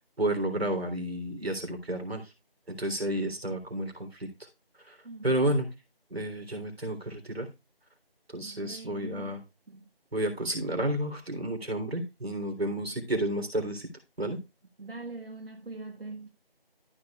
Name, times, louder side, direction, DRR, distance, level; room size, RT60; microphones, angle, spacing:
voice 1, 0.2-2.3 2.7-4.3 4.9-5.0 5.2-5.7 6.1-7.5 8.3-9.4 10.1-13.9 14.2-14.4, right 1 dB, 85° right, 3.5 m, -31 dB
voice 2, 8.4-9.4 9.7-9.9 12.8-13.0 14.8-16.3, right 3 dB, 70° right, 1.6 m, -42 dB
13.5 x 7.1 x 2.4 m
figure-of-eight pair, 175°, 30 cm